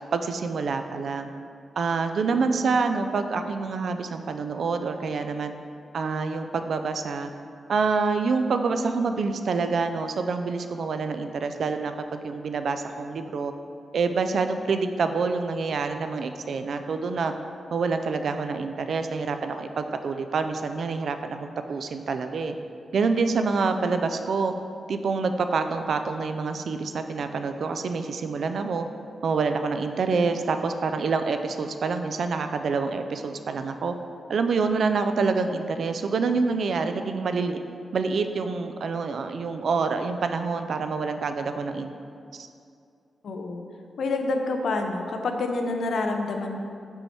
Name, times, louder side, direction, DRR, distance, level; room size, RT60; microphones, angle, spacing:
voice 1, 0.1-1.3 1.8-5.5 5.9-7.3 7.7-13.5 13.9-17.3 17.7-22.5 22.9-24.5 24.9-28.9 29.2-33.9 34.3-37.6 37.9-41.9 42.3-42.5, right 4 dB, 60° right, 8 dB, 0.3 m, -27 dB
voice 2, 43.2-43.6 44.0-46.6, left 3 dB, 75° left, 4 dB, 0.5 m, -27 dB
5.4 x 4.6 x 4.3 m, 2.4 s
wide cardioid pair, 155°, 0 cm